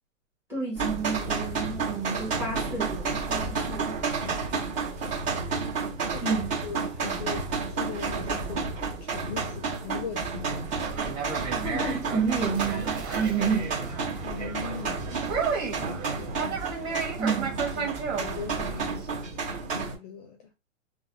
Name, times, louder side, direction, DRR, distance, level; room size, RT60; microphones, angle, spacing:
voice 1, 0.5-4.0 6.2-6.5 11.6-13.8 17.2-17.5, right 5 dB, 5° right, 1.1 m, -30 dB
sound 1, 0.8-19.9, right 4 dB, 30° right, 1.8 m, -31 dB
voice 2, 4.2-4.7 6.1-11.1 14.2-15.2 16.1-16.7 17.8-20.4, left 6 dB, 30° left, 0.6 m, -40 dB
Conversation, 10.7-19.1, right 5 dB, 55° right, 1.7 m, -34 dB
3.2 x 2.3 x 2.7 m
hypercardioid pair, 160°, 39 cm